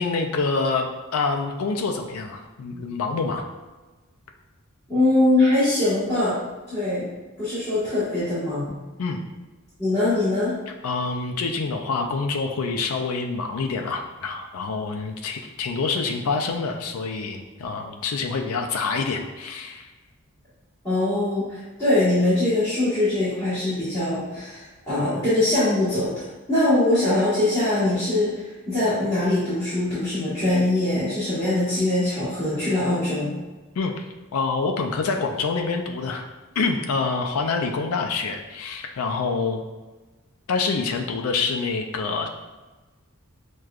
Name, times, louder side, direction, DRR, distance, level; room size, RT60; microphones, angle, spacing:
voice 1, 0.0-3.4 9.0-9.2 10.8-19.9 33.8-33.9 34.3-36.3 36.6-39.6 40.5-42.3, left 4 dB, 85° left, 3 dB, 0.4 m, -26 dB
voice 2, 4.9-6.4 6.7-7.1 7.4-8.8 9.8-10.5 20.8-26.1 26.5-33.3, left 2 dB, 15° left, -16 dB, 1.4 m, -22 dB
6.2 x 2.2 x 2.4 m, 1.2 s
head